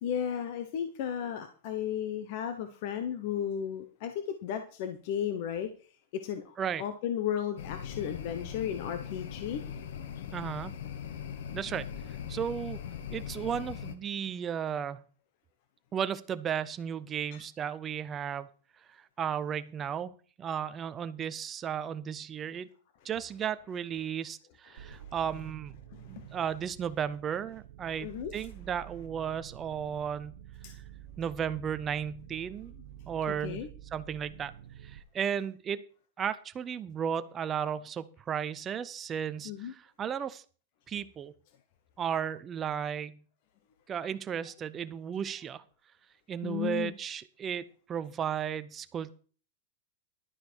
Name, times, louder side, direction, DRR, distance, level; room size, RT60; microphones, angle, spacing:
voice 1, 0.0-5.7 6.1-9.6 17.3-17.4 24.9-25.0 25.9-26.2 28.0-28.3 30.6-30.7 33.3-33.7 39.4-39.7 46.4-46.9, left 9 dB, 40° left, 8 dB, 1.0 m, -34 dB
sound 1, 7.6-14.0, left 8 dB, 55° left, 1.4 m, -40 dB
voice 2, 10.3-10.7 11.5-11.9 12.3-12.8 13.1-15.0 15.9-18.5 18.9-20.1 20.4-22.7 23.0-25.7 26.1-30.4 31.2-32.7 33.1-33.6 33.9-34.5 34.8-35.8 36.2-40.4 40.9-41.3 42.0-43.2 43.9-45.6 46.3-49.1, right 8 dB, 15° right, 13 dB, 0.5 m, -34 dB
sound 2, 24.8-35.0, right 11 dB, 60° right, 0.9 m, -49 dB
11.5 x 9.7 x 4.5 m, 0.40 s
supercardioid pair, 180°, 0 cm